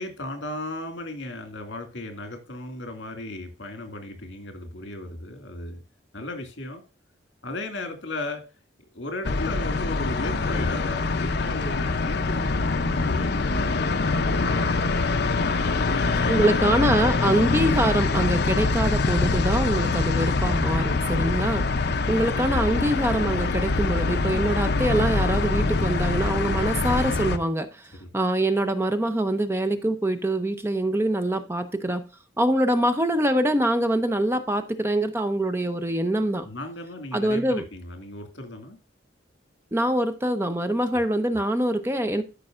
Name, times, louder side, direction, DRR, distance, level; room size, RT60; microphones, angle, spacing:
voice 1, 0.0-5.8 6.1-6.8 7.4-8.4 8.9-14.9 15.3-16.7 28.0-28.1 36.4-38.8, left 2 dB, 75° left, 2.2 m, -36 dB
sound 1, 9.2-27.4, left 3 dB, 60° left, 0.6 m, -24 dB
voice 2, 16.3-21.7 22.1-32.0 32.4-36.5 37.1-37.6 39.7-42.2, right 1 dB, 15° right, 0.6 m, -24 dB
13.0 x 5.4 x 2.4 m
head